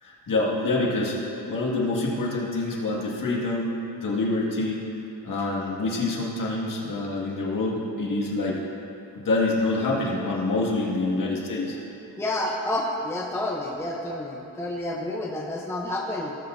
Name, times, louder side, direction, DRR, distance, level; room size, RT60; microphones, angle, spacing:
voice 1, 0.0-4.9 5.2-8.6 9.1-11.8, left 2 dB, 45° left, -3 dB, 2.0 m, -26 dB
voice 2, 12.2-16.3, left 1 dB, 5° left, -2 dB, 0.7 m, -29 dB
17.5 x 7.2 x 2.7 m, 2.9 s
cardioid pair, 110°, 44 cm